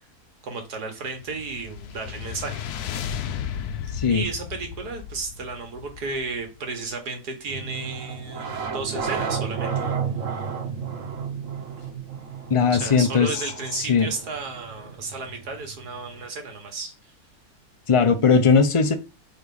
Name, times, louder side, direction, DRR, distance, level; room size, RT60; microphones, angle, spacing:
voice 1, 0.4-2.6 4.1-9.9 12.7-16.9, right 3 dB, 85° right, 1.9 m, -33 dB
sound 1, 1.1-6.6, left 8 dB, 80° left, 1.2 m, -34 dB
voice 2, 3.9-4.2 12.5-13.4 13.8-14.1 17.9-18.9, left 5 dB, 40° left, 0.4 m, -19 dB
sound 2, 7.5-16.2, right 6 dB, 55° right, 1.3 m, -32 dB
4.7 x 3.9 x 5.4 m
omnidirectional pair, 1.6 m